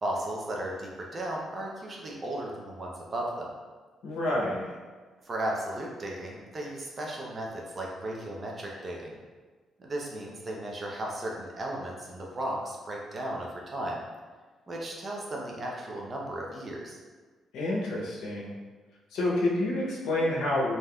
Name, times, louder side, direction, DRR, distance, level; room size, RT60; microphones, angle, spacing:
voice 1, 0.0-3.5 5.3-9.2 9.8-14.0 14.7-17.0, right 1 dB, 35° right, -2 dB, 0.5 m, -35 dB
voice 2, 4.0-4.7 17.5-18.5 19.1-20.7, left 1 dB, 75° left, -4 dB, 0.7 m, -28 dB
3.4 x 2.5 x 2.3 m, 1.4 s
cardioid pair, 90°, 0 cm